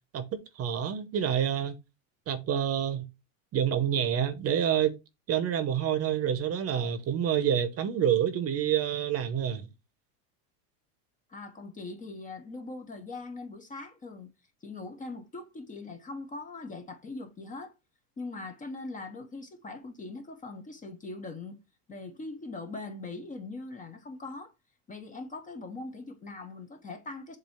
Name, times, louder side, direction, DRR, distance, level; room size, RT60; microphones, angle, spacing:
voice 1, 0.1-1.7 2.3-3.1 3.5-4.9 5.3-9.7, right 9 dB, 30° right, 0.9 m, -28 dB
voice 2, 11.3-14.3 14.6-17.7 18.2-21.6 21.9-24.5 24.9-27.4, left 3 dB, 15° left, 0.8 m, -41 dB
7.5 x 2.7 x 5.5 m
supercardioid pair, 140°, 48 cm